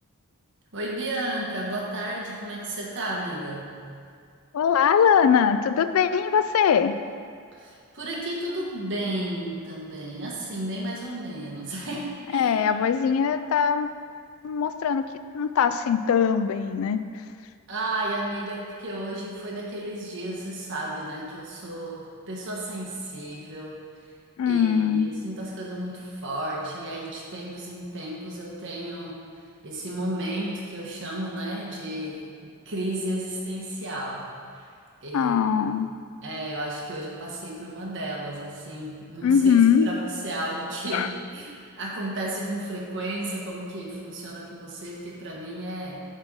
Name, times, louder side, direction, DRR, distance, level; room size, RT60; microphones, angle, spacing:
voice 1, 0.7-3.8 7.5-12.6 17.7-23.8 24.4-29.2 29.6-34.7 35.0-35.7 36.2-46.0, right 1 dB, 55° right, -3 dB, 1.4 m, -33 dB
voice 2, 4.5-7.0 12.3-13.9 14.4-15.0 15.3-17.0 24.4-25.1 35.1-35.9 39.2-39.9 40.9-41.1, left 7 dB, 65° left, 11 dB, 0.3 m, -21 dB
7.2 x 3.8 x 6.1 m, 2.2 s
head